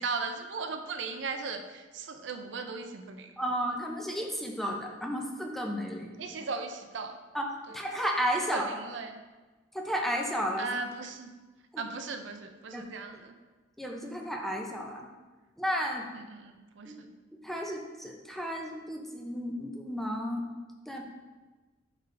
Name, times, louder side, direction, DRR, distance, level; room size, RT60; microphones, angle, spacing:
voice 1, 0.0-3.3 6.2-7.2 7.7-7.8 8.5-9.2 10.6-11.3 11.8-13.3 16.1-17.1, right 4 dB, 70° right, 7 dB, 0.5 m, -37 dB
voice 2, 3.4-6.1 7.3-7.5 7.7-8.7 9.7-10.7 11.7-11.8 12.7-12.8 13.8-15.1 15.6-16.1 16.9-17.0 17.3-20.4 20.9-21.0, equal, ahead, 1 dB, 0.6 m, -33 dB
8.9 x 3.7 x 3.3 m, 1.3 s
head